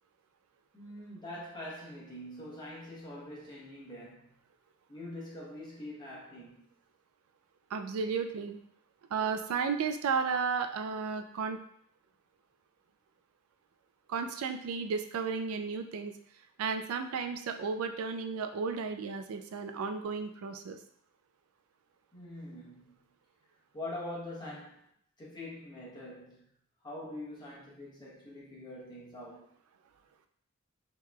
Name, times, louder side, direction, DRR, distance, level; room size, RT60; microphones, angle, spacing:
voice 1, 0.7-4.3 4.9-6.7 22.1-23.0 23.7-24.8 25.2-26.5 26.8-29.5, left 1 dB, 20° left, 1.1 m, -44 dB
voice 2, 7.7-8.6 9.1-11.6 14.1-16.1 16.6-20.8, right 5 dB, 85° right, 0.4 m, -33 dB
4.6 x 2.9 x 2.3 m
head